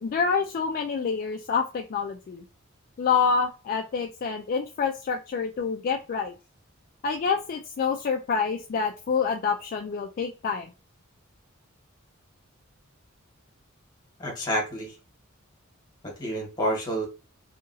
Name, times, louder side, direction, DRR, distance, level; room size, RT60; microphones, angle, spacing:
voice 1, 0.0-2.4 3.0-6.3 7.0-10.7, left 5 dB, 45° left, 3 dB, 0.3 m, -27 dB
voice 2, 14.2-14.9 16.0-17.1, equal, 20° left, -1 dB, 1.3 m, -29 dB
2.8 x 2.5 x 2.6 m, 0.31 s
head